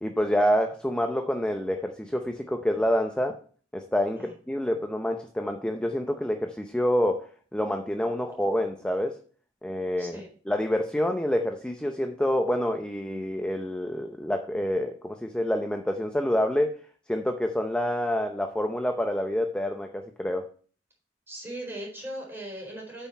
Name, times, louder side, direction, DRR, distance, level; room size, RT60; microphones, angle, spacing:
voice 1, 0.0-3.4 3.7-7.2 7.5-9.2 9.6-16.8 17.1-20.5, equal, 5° left, 4 dB, 0.6 m, -27 dB
voice 2, 21.3-23.1, right 1 dB, 10° right, -3 dB, 4.1 m, -38 dB
8.6 x 5.8 x 4.4 m, 0.43 s
head